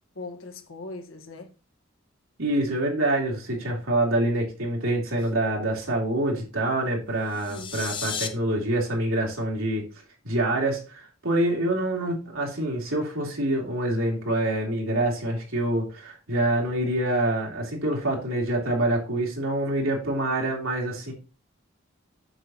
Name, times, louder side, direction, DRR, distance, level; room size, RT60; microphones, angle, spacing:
voice 1, 0.1-1.5 5.2-5.3 7.3-7.9 19.8-19.9, left 2 dB, 80° left, 1.5 m, -41 dB
voice 2, 2.4-9.9 10.2-21.1, right 1 dB, 80° right, 3.1 m, -26 dB
sound 1, 7.2-8.3, left 7 dB, 25° left, 0.8 m, -33 dB
7.9 x 7.1 x 3.0 m
head